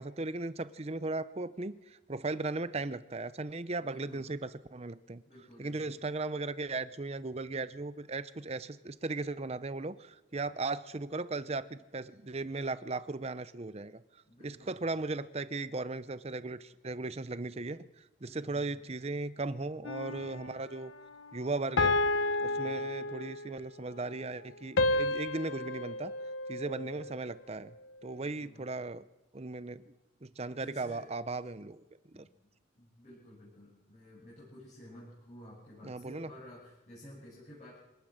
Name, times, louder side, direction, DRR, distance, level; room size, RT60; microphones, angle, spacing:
voice 1, 0.0-5.2 5.6-14.0 14.4-20.9 21.3-22.0 22.4-26.1 26.5-27.7 28.0-29.0 29.3-29.9 30.2-31.8 32.1-32.2 35.8-36.3, right 3 dB, 30° right, 14 dB, 0.7 m, -37 dB
voice 2, 3.8-4.3 5.3-5.9 14.3-14.9 18.3-18.8 22.4-22.9 26.5-27.0 28.1-28.7 30.5-31.4 32.1-32.3 32.7-37.8, left 1 dB, 35° left, -6 dB, 8.0 m, -53 dB
sound 1, 19.8-20.5 21.8-23.6 24.8-27.2, left 2 dB, 75° left, 1.1 m, -31 dB
25.0 x 19.0 x 6.5 m, 1.0 s
head